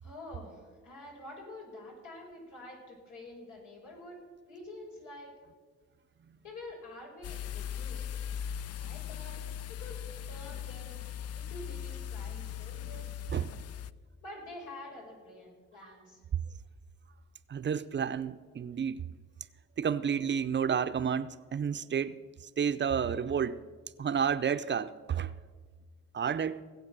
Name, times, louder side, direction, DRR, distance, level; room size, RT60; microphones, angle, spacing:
voice 1, 0.0-5.3 6.4-8.2 8.8-9.4 9.7-11.0 11.3-13.6 14.2-16.2, left 2 dB, 85° left, -1 dB, 5.7 m, -48 dB
sound 1, 7.2-13.9, left 9 dB, 55° left, 0.5 m, -39 dB
voice 2, 17.5-19.0 19.8-22.2 22.6-23.6 24.0-25.3 26.1-26.6, right 7 dB, 40° right, 12 dB, 0.6 m, -30 dB
18.5 x 7.9 x 6.7 m, 1.5 s
cardioid pair, 90°, 30 cm